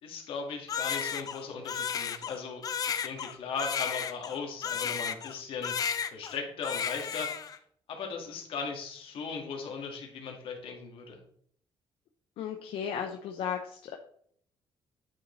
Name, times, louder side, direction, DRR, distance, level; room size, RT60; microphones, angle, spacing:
voice 1, 0.0-5.7 6.1-7.5 7.9-11.2, left 5 dB, 70° left, 3 dB, 1.7 m, -38 dB
Crying sobbing, 0.7-5.4 5.6-6.4 6.6-7.6, left 7 dB, 40° left, 0.5 m, -33 dB
voice 2, 12.4-14.0, left 8 dB, 90° left, 4 dB, 0.7 m, -35 dB
9.4 x 5.5 x 3.1 m, 0.62 s
cardioid pair, 150°, 9 cm